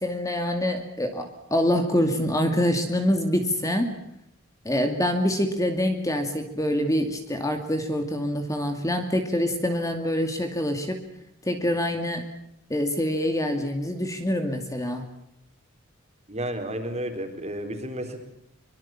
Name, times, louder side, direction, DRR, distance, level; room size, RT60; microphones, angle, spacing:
voice 1, 0.0-3.9 4.6-11.0 11.4-12.3 12.7-15.1, equal, 15° left, 6 dB, 2.4 m, -25 dB
voice 2, 16.3-18.2, right 1 dB, 30° right, 5 dB, 4.1 m, -32 dB
24.5 x 24.0 x 7.4 m, 0.77 s
head